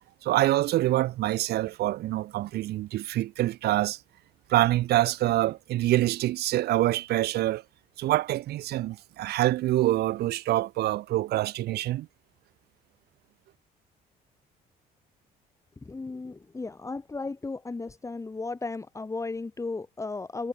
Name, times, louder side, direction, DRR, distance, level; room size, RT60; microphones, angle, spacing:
voice 1, 0.2-4.0 4.5-7.6 8.0-12.1, right 15 dB, 75° right, 1.7 m, -26 dB
voice 2, 15.8-20.5, left 3 dB, 15° left, 2.0 m, -35 dB
cardioid pair, 110°, 17 cm